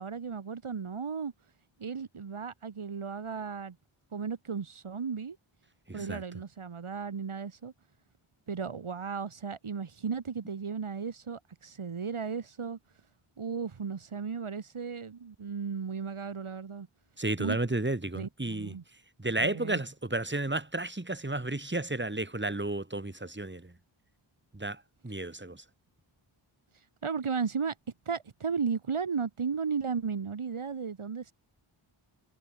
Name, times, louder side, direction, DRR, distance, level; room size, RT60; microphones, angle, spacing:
voice 1, 0.0-1.3 1.8-3.8 4.1-5.4 5.9-7.7 8.5-12.8 13.4-16.9 17.4-17.6 18.1-18.8 19.4-19.8 27.0-27.7 28.1-31.3, right 6 dB, 75° right, 2.5 m, -35 dB
voice 2, 5.9-6.2 17.2-18.8 19.2-23.6 24.5-24.8 25.0-25.6, right 2 dB, 20° right, 3.6 m, -32 dB
wide cardioid pair, 55°, 50 cm